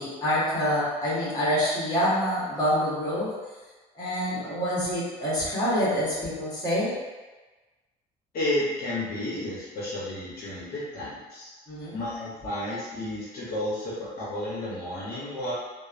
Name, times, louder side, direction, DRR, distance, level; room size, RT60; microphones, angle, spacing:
voice 1, 0.0-3.3 4.0-6.9 11.7-12.0, equal, 20° left, -9 dB, 1.2 m, -26 dB
voice 2, 8.3-11.5 11.9-15.5, left 1 dB, 60° left, -8 dB, 0.8 m, -32 dB
3.0 x 2.0 x 2.4 m, 1.2 s
cardioid pair, 110°, 17 cm